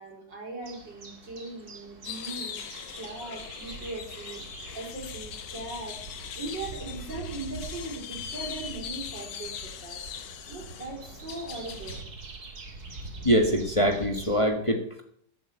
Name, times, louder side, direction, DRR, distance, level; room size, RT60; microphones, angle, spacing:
voice 1, 0.0-2.6 2.9-4.4 4.7-6.0 6.4-12.0, right 2 dB, 85° right, -1 dB, 5.6 m, -39 dB
sound 1, 0.6-14.4, right 3 dB, 60° right, 2.8 m, -44 dB
sound 2, 2.0-12.0, left 8 dB, 80° left, 1.7 m, -41 dB
voice 2, 13.2-15.0, equal, 20° left, 3 dB, 1.6 m, -24 dB
12.5 x 8.2 x 8.0 m, 0.65 s
omnidirectional pair, 1.9 m